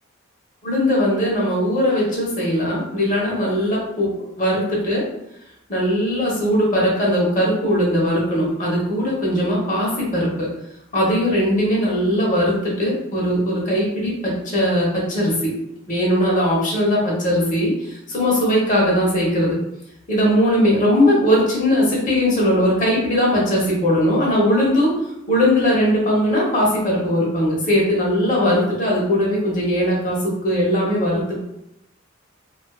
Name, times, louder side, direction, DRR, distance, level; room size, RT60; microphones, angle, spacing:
voice 1, 0.6-5.0 5.7-10.5 10.9-15.5 15.9-19.6 20.1-24.9 25.3-31.4, equal, 40° left, -4 dB, 0.8 m, -19 dB
2.4 x 2.3 x 2.3 m, 0.81 s
head